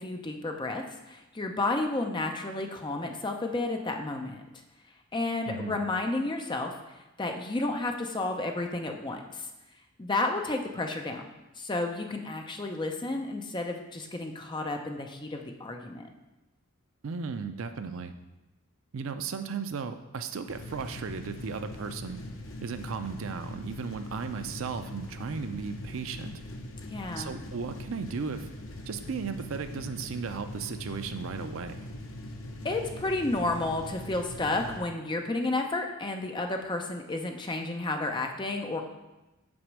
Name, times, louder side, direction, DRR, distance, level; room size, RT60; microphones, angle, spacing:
voice 1, 0.0-4.4 5.1-6.7 7.2-9.5 10.0-11.3 11.6-16.0 26.9-27.3 32.6-38.8, left 2 dB, 20° left, 3 dB, 0.5 m, -31 dB
voice 2, 5.5-5.8 17.0-18.2 18.9-22.2 22.6-26.3 27.2-28.5 28.9-31.8, right 5 dB, 65° right, 9 dB, 0.5 m, -35 dB
sound 1, 20.5-34.8, left 1 dB, 65° left, 0.8 m, -42 dB
6.1 x 4.3 x 6.1 m, 1.0 s
head